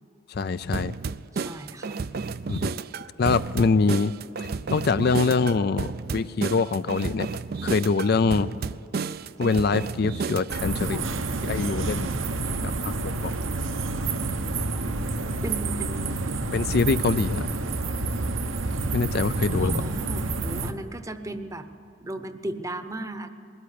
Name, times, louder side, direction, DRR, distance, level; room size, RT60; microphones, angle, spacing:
voice 1, 0.3-0.9 2.5-2.7 3.2-4.1 4.4-7.3 7.6-8.5 9.4-11.1 11.4-12.1 12.6-13.3 16.5-17.4 18.9-19.8, left 4 dB, 50° left, 14 dB, 0.4 m, -24 dB
sound 1, 0.7-10.7, right 4 dB, 50° right, 0.4 m, -32 dB
voice 2, 1.3-2.0 10.9-11.1 15.4-16.2 19.6-21.7 22.0-23.3, right 1 dB, 15° right, 9 dB, 0.8 m, -36 dB
sound 2, 10.5-20.7, right 3 dB, 75° right, 1.0 m, -29 dB
21.0 x 13.5 x 10.0 m, 2.9 s
head